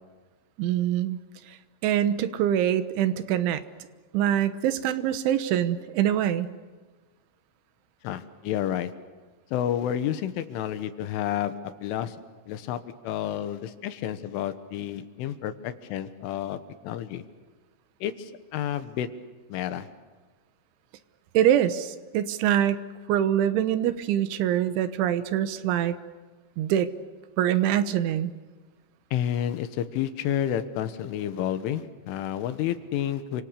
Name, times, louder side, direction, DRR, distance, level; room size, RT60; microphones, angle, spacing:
voice 1, 0.6-1.2 1.8-3.6 4.1-6.5 21.4-22.8 23.1-26.0 26.6-26.9 27.4-28.3, right 11 dB, 75° right, 11 dB, 3.5 m, -24 dB
voice 2, 8.0-8.9 9.5-12.2 12.5-16.6 16.8-17.2 18.0-19.1 19.5-19.9 29.1-33.4, left 10 dB, 85° left, 10 dB, 3.7 m, -30 dB
29.5 x 26.0 x 6.8 m, 1.4 s
omnidirectional pair, 5.6 m